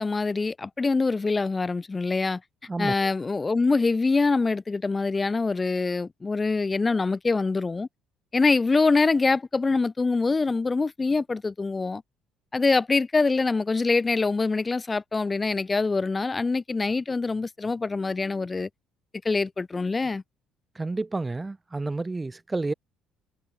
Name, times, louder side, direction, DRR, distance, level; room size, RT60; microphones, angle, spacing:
voice 1, 0.0-2.4 2.8-7.9 8.3-12.0 12.5-18.7 19.2-20.2, left 3 dB, 15° left, 1.6 m, -24 dB
voice 2, 2.7-3.1 20.8-22.7, right 3 dB, 15° right, 3.6 m, -30 dB
cardioid pair, 150°, 0 cm